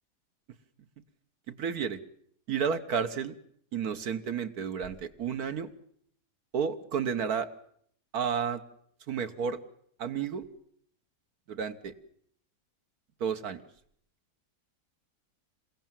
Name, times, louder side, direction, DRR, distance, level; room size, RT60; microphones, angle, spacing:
voice 1, 1.5-2.0 2.5-3.3 3.7-5.7 6.5-7.5 8.1-8.6 9.1-9.6 10.0-10.5 11.5-11.9 13.2-13.6, right 7 dB, 65° right, 8 dB, 1.7 m, -31 dB
28.0 x 16.5 x 7.5 m, 0.68 s
omnidirectional pair, 1.7 m